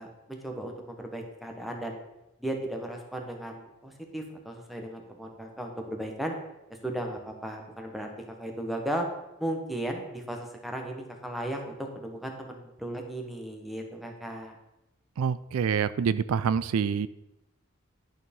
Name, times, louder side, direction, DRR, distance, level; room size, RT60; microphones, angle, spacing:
voice 1, 0.0-2.0 2.4-6.3 6.8-9.1 9.4-14.6, right 1 dB, ahead, 2 dB, 1.2 m, -36 dB
voice 2, 15.2-17.1, right 7 dB, 85° right, 17 dB, 0.4 m, -26 dB
11.0 x 4.7 x 5.3 m, 0.90 s
head